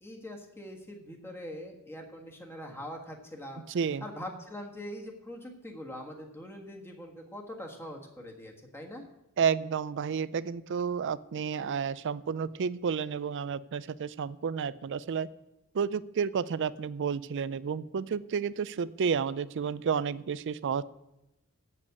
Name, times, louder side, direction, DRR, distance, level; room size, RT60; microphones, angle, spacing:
voice 1, 0.0-3.7 4.0-9.1, equal, 10° left, 1 dB, 1.5 m, -43 dB
voice 2, 9.4-15.3 15.7-20.8, right 6 dB, 55° right, 17 dB, 0.4 m, -31 dB
8.1 x 7.6 x 8.2 m, 0.91 s
head